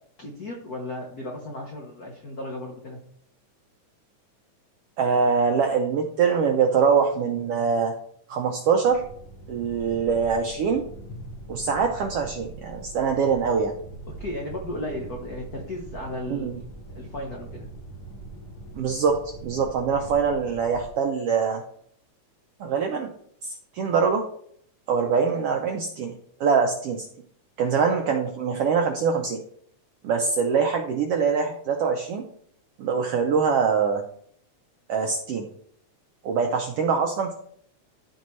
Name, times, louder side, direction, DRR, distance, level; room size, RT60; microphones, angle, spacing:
voice 1, 0.2-3.0 14.1-16.6 16.9-17.7, left 1 dB, 85° left, 0 dB, 0.8 m, -35 dB
voice 2, 5.0-7.9 8.3-9.0 9.5-10.8 11.5-13.7 16.3-16.6 18.8-21.6 22.6-23.1 23.4-24.2 24.9-26.1 26.4-27.0 27.6-29.4 30.0-32.2 32.8-34.0 34.9-35.5 36.2-37.3, right 6 dB, 75° right, 3 dB, 1.4 m, -23 dB
sound 1, 8.9-20.9, right 2 dB, 50° left, 1.3 m, -42 dB
13.5 x 4.5 x 3.1 m, 0.65 s
omnidirectional pair, 3.4 m